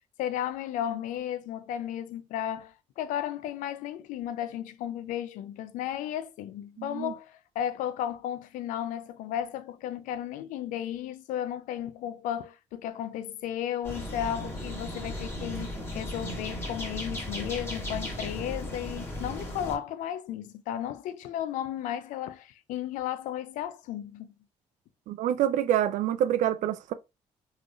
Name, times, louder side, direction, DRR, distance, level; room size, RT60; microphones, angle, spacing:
voice 1, 0.2-24.3, left 10 dB, 80° left, 0.4 m, -34 dB
voice 2, 6.8-7.1 25.1-26.9, right 11 dB, 75° right, 0.4 m, -26 dB
sound 1, 13.8-19.8, equal, 20° left, 1.9 m, -36 dB
3.7 x 3.2 x 2.3 m
supercardioid pair, 75°, 13 cm